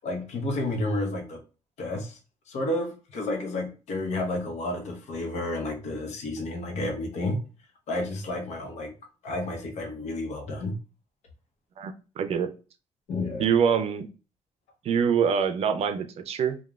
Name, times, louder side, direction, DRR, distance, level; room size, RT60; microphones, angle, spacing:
voice 1, 0.0-1.4 1.8-2.2 2.5-7.4 7.9-8.9 9.2-10.7 13.1-13.5, left 2 dB, 75° left, 3 dB, 0.8 m, -31 dB
voice 2, 11.8-12.5 13.4-14.1 14.8-16.6, right 7 dB, 60° right, 9 dB, 0.4 m, -25 dB
3.0 x 2.2 x 2.3 m, 0.33 s
cardioid pair, 130°, 12 cm